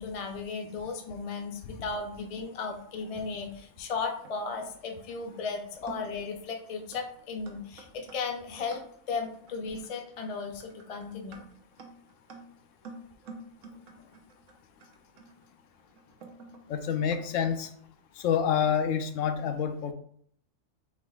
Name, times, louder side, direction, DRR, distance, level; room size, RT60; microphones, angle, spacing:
voice 1, 0.0-11.4, left 4 dB, 45° left, 3 dB, 0.4 m, -36 dB
sound 1, 3.7-4.7 5.4-5.5 5.9-6.3 6.9-7.1 7.5-17.3, right 3 dB, 90° right, 1.2 m, -49 dB
voice 2, 16.7-17.7 18.2-19.9, left 8 dB, 80° left, 8 dB, 0.9 m, -27 dB
6.4 x 3.6 x 2.3 m, 0.64 s
omnidirectional pair, 1.3 m